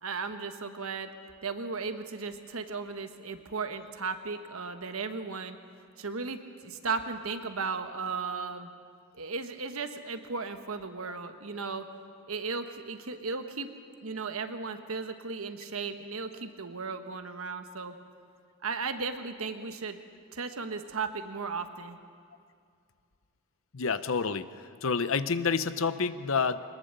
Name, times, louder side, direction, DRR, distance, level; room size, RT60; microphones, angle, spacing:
voice 1, 0.0-1.1 1.4-5.6 6.0-8.7 9.1-11.9 12.3-13.7 14.0-17.9 18.6-20.0 20.3-22.0, right 4 dB, 70° right, 7 dB, 1.3 m, -35 dB
voice 2, 23.7-24.5 24.8-26.6, left 5 dB, 65° left, 13 dB, 0.7 m, -28 dB
21.5 x 20.5 x 6.8 m, 2.2 s
head